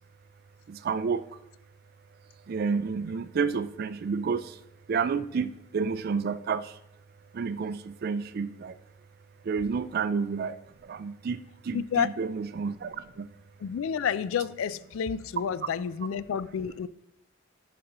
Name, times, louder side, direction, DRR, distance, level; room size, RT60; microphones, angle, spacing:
voice 1, 0.7-1.2 2.5-4.5 4.9-6.7 7.3-8.7 9.5-10.6 10.9-11.4 11.7-13.3, right 5 dB, 50° right, 0.3 m, -30 dB
voice 2, 11.7-12.1 13.6-16.9, left 7 dB, 80° left, 0.3 m, -30 dB
12.0 x 5.1 x 2.9 m
head